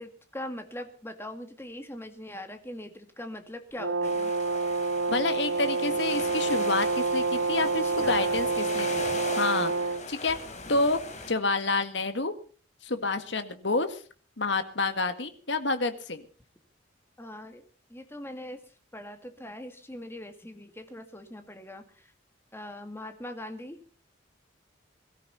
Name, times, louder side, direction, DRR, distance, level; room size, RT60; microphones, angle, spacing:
voice 1, 0.0-4.3 7.6-8.4 11.4-11.5 17.2-22.1 22.5-23.8, left 1 dB, 10° left, 7 dB, 2.0 m, -42 dB
Brass instrument, 3.8-10.0, right 3 dB, 90° right, 2.2 m, -28 dB
sound 1, 4.0-11.3, left 3 dB, 40° left, 3.2 m, -39 dB
voice 2, 5.1-10.4 10.7-11.0 11.3-12.3 12.8-14.0 14.4-16.2, left 3 dB, 65° left, 10 dB, 1.7 m, -29 dB
22.0 x 14.0 x 4.1 m, 0.39 s
head